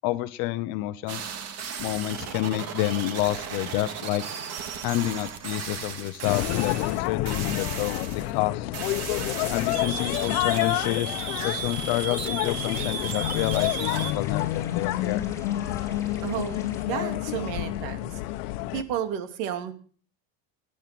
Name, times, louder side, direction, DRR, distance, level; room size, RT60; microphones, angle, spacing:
voice 1, 0.0-1.2 1.8-4.2 4.8-8.7 9.5-15.2, left 16 dB, 55° left, 13 dB, 1.0 m, -29 dB
sound 1, 1.1-8.5 8.7-14.1, right 7 dB, 35° right, 2.1 m, -35 dB
sound 2, 6.2-18.8, left 16 dB, 85° left, 1.2 m, -29 dB
sound 3, 12.5-16.9, left 3 dB, 5° left, 2.9 m, -43 dB
voice 2, 16.2-18.2 18.7-19.7, right 9 dB, 60° right, 8 dB, 2.8 m, -32 dB
18.0 x 10.0 x 6.0 m, 0.42 s
cardioid pair, 175°, 42 cm